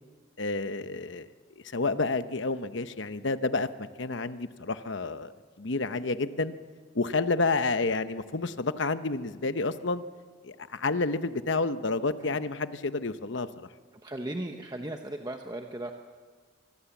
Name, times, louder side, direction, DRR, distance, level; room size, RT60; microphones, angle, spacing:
voice 1, 0.4-1.3 1.6-5.3 5.6-6.5 6.9-10.0 10.4-13.7, left 3 dB, 65° left, 11 dB, 0.9 m, -30 dB
voice 2, 14.0-15.9, right 1 dB, 20° right, 4 dB, 1.0 m, -36 dB
25.0 x 20.5 x 7.2 m, 1.6 s
head